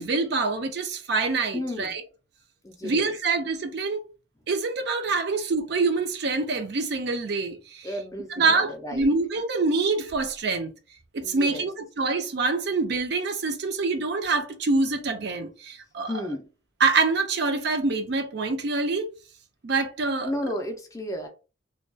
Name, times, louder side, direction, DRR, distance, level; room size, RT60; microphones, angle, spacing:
voice 1, 0.0-2.0 2.8-4.0 4.5-7.9 8.3-10.7 11.1-16.1 16.8-19.1 19.6-20.3, right 3 dB, 55° right, 0.4 m, -25 dB
voice 2, 1.5-1.9 2.6-3.1 7.8-9.1 11.2-11.7 16.1-16.5 20.2-21.3, left 1 dB, 15° left, 0.4 m, -33 dB
2.2 x 2.2 x 2.6 m
head